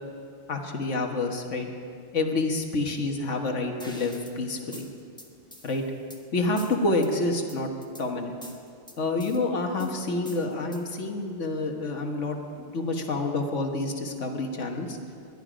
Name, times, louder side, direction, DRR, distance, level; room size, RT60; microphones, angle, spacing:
voice 1, 0.5-1.7 2.1-4.9 5.6-5.8 6.3-7.7 8.0-8.4 9.0-15.0, left 2 dB, 90° left, 3 dB, 1.7 m, -28 dB
sound 1, 3.8-4.3 4.7-6.2 6.6-7.1 7.5-8.0 8.4-9.4 9.8-11.0, equal, 5° left, 1.2 m, -45 dB
21.0 x 11.5 x 5.1 m, 2.4 s
omnidirectional pair, 1.2 m